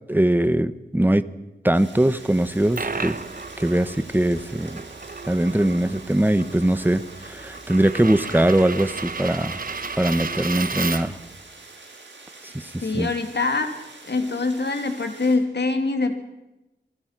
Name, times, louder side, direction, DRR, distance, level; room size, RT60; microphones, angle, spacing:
voice 1, 0.1-1.3 1.6-3.2 3.6-4.8 5.2-9.6 10.0-11.2 12.5-13.1, right 1 dB, 10° right, 13 dB, 1.1 m, -21 dB
sound 1, 1.7-15.4, right 3 dB, 80° right, 7.5 m, -46 dB
Coin (dropping), 2.4-11.3, right 4 dB, 50° right, 1.2 m, -33 dB
voice 2, 12.8-13.7 14.0-16.2, left 3 dB, 70° left, 6 dB, 2.9 m, -24 dB
30.0 x 20.5 x 6.1 m, 0.98 s
wide cardioid pair, 90°, 18 cm